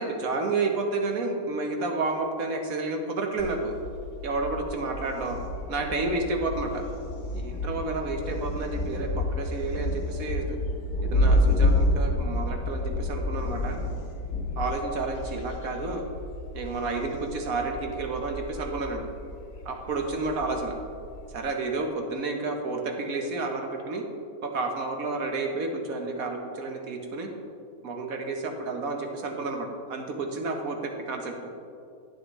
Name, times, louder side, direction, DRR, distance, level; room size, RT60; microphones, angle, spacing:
voice 1, 0.0-3.7 4.2-5.4 5.7-6.8 7.3-10.6 11.0-13.8 14.6-16.0 16.5-19.1 19.6-20.7 21.3-24.0 24.4-27.3 27.8-31.5, right 3 dB, 65° right, 3 dB, 1.4 m, -30 dB
Thunder, 3.4-21.4, left 1 dB, 55° left, 1.1 m, -30 dB
11.0 x 9.2 x 3.1 m, 2.5 s
omnidirectional pair, 1.6 m